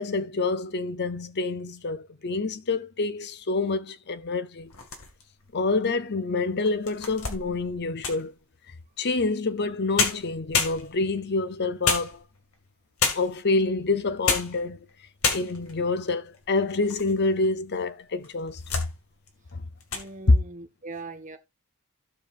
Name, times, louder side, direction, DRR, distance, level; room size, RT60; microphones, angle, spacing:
voice 1, 0.0-4.7 5.5-8.3 9.0-12.2 13.1-14.8 15.3-18.8 19.5-19.6, left 3 dB, 50° left, 0.7 m, -27 dB
sound 1, 4.7-5.4 6.0-6.1 6.7-8.3 9.6-9.7 10.0-11.2 11.8-12.5 13.0-13.5 14.1-14.6 14.9-15.0 15.2-15.8 16.3-17.1 17.4-17.5 18.2-18.9 19.3-19.5 19.8-20.1, left 5 dB, 70° left, 2.1 m, -28 dB
voice 2, 19.9-21.4, right 3 dB, 35° right, 1.3 m, -40 dB
16.0 x 5.4 x 2.5 m
head